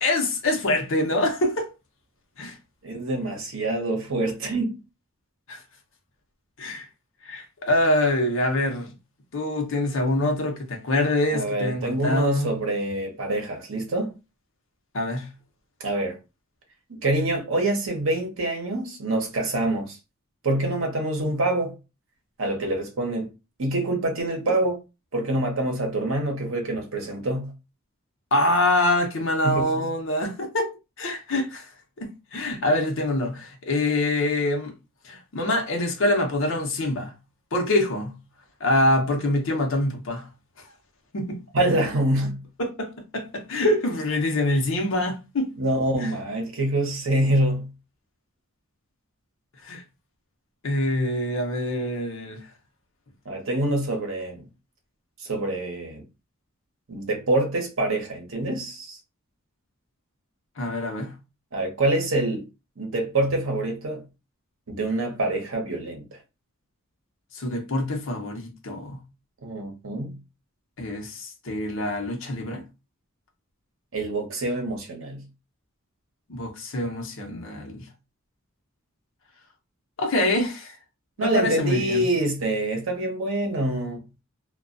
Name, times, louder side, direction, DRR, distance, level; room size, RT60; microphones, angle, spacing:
voice 1, 0.0-1.7 2.4-2.6 5.5-5.6 6.6-6.9 7.2-8.9 9.3-12.6 14.9-15.3 28.3-30.7 31.0-31.7 32.0-34.7 35.0-37.1 37.5-38.2 38.6-40.3 41.1-41.4 42.6-45.5 46.0-46.1 49.6-49.8 50.6-52.5 60.6-61.1 67.3-69.0 70.8-72.6 76.3-77.9 80.0-80.8 81.2-82.1, left 1 dB, 65° left, 0.7 m, -25 dB
voice 2, 2.8-4.8 11.3-14.1 15.8-16.2 16.9-20.0 20.4-21.8 22.4-23.3 23.6-24.8 25.1-27.5 29.4-29.9 41.5-42.4 45.6-47.7 53.2-54.4 55.2-56.0 56.9-59.0 61.5-62.4 62.8-64.0 64.7-66.2 69.4-70.2 73.9-75.2 81.2-84.0, right 1 dB, 65° right, 0.8 m, -26 dB
2.2 x 2.2 x 2.5 m
head